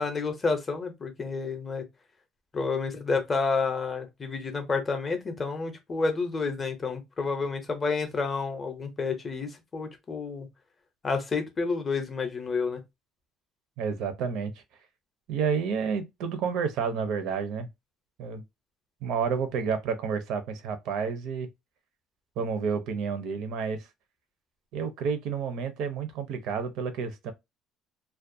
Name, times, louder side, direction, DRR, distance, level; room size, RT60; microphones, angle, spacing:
voice 1, 0.0-1.8 2.5-10.5 11.0-12.8, left 4 dB, 20° left, 0.5 m, -30 dB
voice 2, 13.8-14.5 15.3-17.7 18.2-18.4 19.0-21.5 22.4-23.9 24.7-27.3, right 6 dB, 60° right, 0.5 m, -30 dB
2.3 x 2.1 x 2.5 m
cardioid pair, 165°, 0 cm